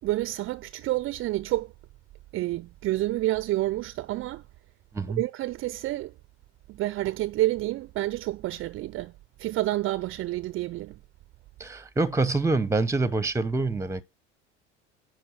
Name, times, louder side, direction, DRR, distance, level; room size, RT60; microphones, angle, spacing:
voice 1, 0.0-1.7 2.3-4.4 5.2-6.1 6.7-9.1 9.4-11.0, right 16 dB, 35° right, 0.6 m, -29 dB
voice 2, 11.6-14.0, right 3 dB, 10° right, 0.9 m, -26 dB
10.0 x 4.6 x 5.4 m
figure-of-eight pair, 75°, 35 cm